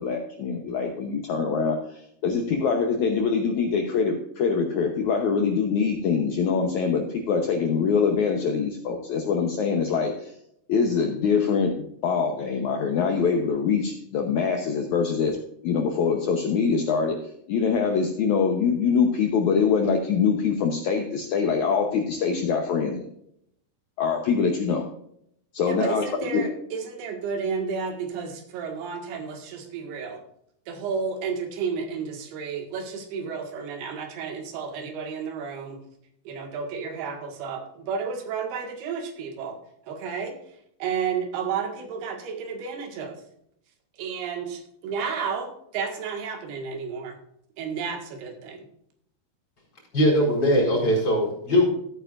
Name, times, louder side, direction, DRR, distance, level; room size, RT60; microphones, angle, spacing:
voice 1, 0.0-10.3 10.7-17.2 17.5-23.1 24.0-24.9 25.5-26.4, left 5 dB, 85° left, 4 dB, 1.6 m, -24 dB
voice 2, 25.7-30.2 30.7-35.8 36.3-39.6 39.9-40.4 40.8-43.2 44.0-47.2 47.6-48.7, right 6 dB, 75° right, 4 dB, 3.6 m, -32 dB
voice 3, 49.9-51.7, equal, 25° left, -5 dB, 4.6 m, -20 dB
15.0 x 9.1 x 2.5 m, 0.73 s
omnidirectional pair, 4.8 m